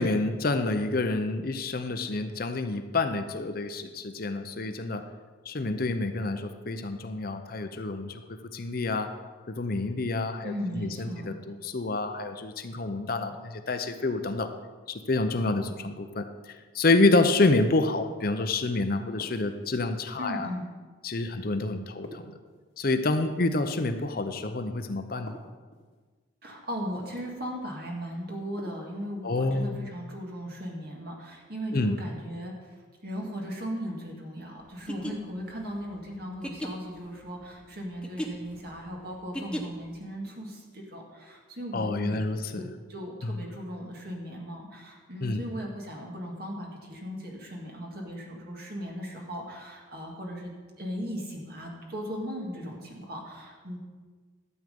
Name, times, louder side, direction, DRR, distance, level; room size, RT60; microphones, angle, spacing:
voice 1, 0.0-5.0 5.5-8.2 8.5-9.1 9.5-14.5 14.9-16.3 16.7-20.5 21.0-22.2 22.8-25.4 29.2-29.8 31.7-32.0 41.7-42.7 43.2-43.3 45.2-45.4, left 2 dB, 45° left, 8 dB, 0.6 m, -28 dB
voice 2, 10.4-11.3 20.2-20.6 26.4-32.5 33.0-42.2 42.5-53.8, equal, 50° right, -1 dB, 2.0 m, -37 dB
sound 1, 19.2-20.0 22.0-23.1 25.3-26.0 28.6-29.2, left 1 dB, 75° left, 1.8 m, -47 dB
sound 2, 34.7-40.0, equal, 5° left, 0.8 m, -38 dB
12.5 x 7.7 x 5.2 m, 1.4 s
head